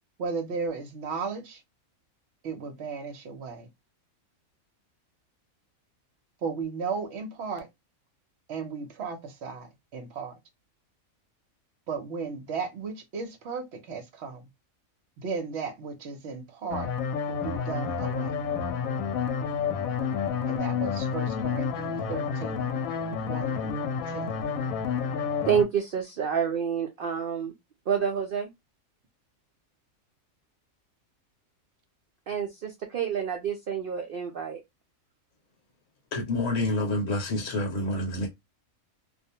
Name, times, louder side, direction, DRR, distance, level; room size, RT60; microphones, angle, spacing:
voice 1, 0.2-1.6 2.4-3.7 6.4-7.7 8.5-10.3 11.9-14.5 15.2-16.9 17.3-18.4 20.5-22.8 23.3-24.4, right 5 dB, 60° right, 0.8 m, -35 dB
sound 1, 16.7-25.6, left 6 dB, 90° left, 1.0 m, -30 dB
voice 2, 25.4-27.5 27.9-28.5 32.3-34.6, right 7 dB, 85° right, 0.4 m, -28 dB
voice 3, 36.1-38.3, left 1 dB, 65° left, 1.1 m, -28 dB
2.4 x 2.1 x 2.7 m
omnidirectional pair, 1.5 m